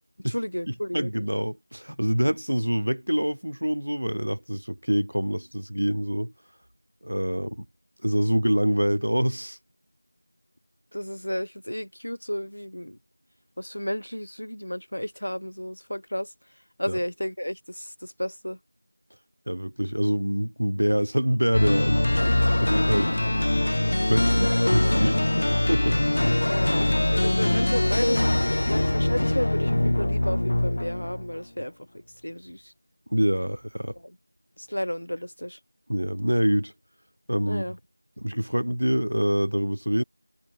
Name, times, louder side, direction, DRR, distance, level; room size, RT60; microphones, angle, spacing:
voice 1, 0.2-1.1 10.9-13.0 13.6-18.6 26.4-31.9 32.2-32.7 34.0-34.2 34.6-35.6 37.4-37.8, equal, 70° left, 3.7 m, -33 dB
voice 2, 0.9-6.3 7.0-7.6 8.0-9.6 19.5-22.0 22.6-23.5 24.1-26.0 33.1-33.9 35.9-36.7 37.3-37.6 38.2-40.0, equal, 85° right, 1.2 m, -25 dB
sound 1, 21.5-31.4, left 1 dB, 20° left, 0.4 m, -23 dB
figure-of-eight pair, 180°, 0 cm